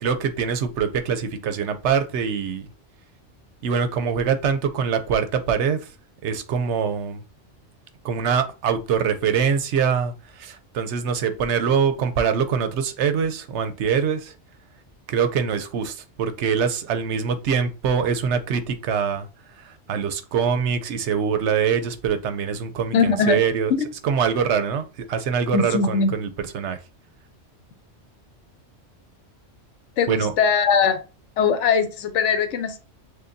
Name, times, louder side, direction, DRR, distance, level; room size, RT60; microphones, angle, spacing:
voice 1, 0.0-2.7 3.6-5.8 6.2-7.2 8.0-14.3 15.1-19.3 19.6-23.7 24.0-26.8 30.1-30.3, right 7 dB, 75° right, 9 dB, 0.9 m, -24 dB
voice 2, 22.9-23.4 23.8-23.9 25.5-26.1 30.0-31.0 31.4-32.8, left 5 dB, 75° left, 9 dB, 1.0 m, -20 dB
6.5 x 2.3 x 2.5 m, 0.32 s
omnidirectional pair, 1.2 m